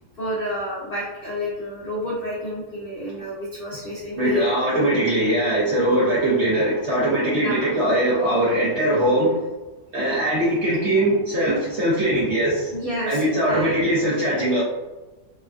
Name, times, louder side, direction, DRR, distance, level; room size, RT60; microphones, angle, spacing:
voice 1, 0.2-4.4 4.7-4.9 7.4-7.8 12.7-13.8, left 1 dB, 75° left, -6 dB, 0.5 m, -30 dB
voice 2, 4.2-9.3 9.9-12.7 13.1-14.6, right 1 dB, 60° right, -6 dB, 0.7 m, -21 dB
3.3 x 2.3 x 2.3 m, 1.1 s
omnidirectional pair, 1.8 m